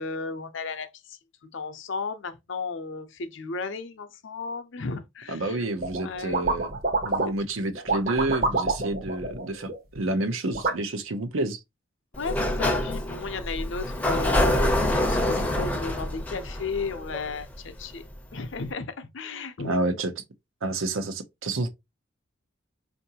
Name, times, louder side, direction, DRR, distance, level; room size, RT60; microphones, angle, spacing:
voice 1, 0.0-5.6 6.0-6.5 7.2-7.3 12.1-18.1 18.3-19.7, left 4 dB, 70° left, 0.6 m, -34 dB
voice 2, 5.3-6.7 7.0-11.6 19.6-20.1 20.6-21.7, right 2 dB, 80° right, 0.7 m, -29 dB
sound 1, 5.8-6.1 6.3-7.5 7.7-10.0 10.5-10.7, right 3 dB, 45° right, 0.9 m, -27 dB
Sliding door, 12.1-17.8, left 1 dB, 5° left, 0.5 m, -26 dB
4.5 x 2.6 x 2.8 m
head